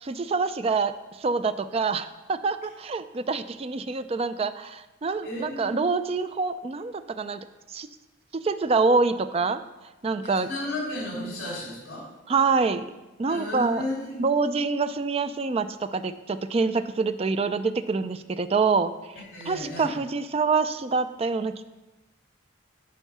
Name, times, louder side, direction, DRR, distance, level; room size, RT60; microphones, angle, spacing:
voice 1, 0.0-7.9 8.4-9.6 10.0-10.5 12.3-12.8 13.2-13.8 14.2-18.9 19.5-21.6, right 4 dB, 30° right, 11 dB, 0.3 m, -26 dB
voice 2, 5.2-5.8 10.3-12.1 13.3-14.2 19.3-19.9, left 1 dB, 50° left, -5 dB, 2.9 m, -33 dB
9.1 x 4.6 x 5.5 m, 1.0 s
head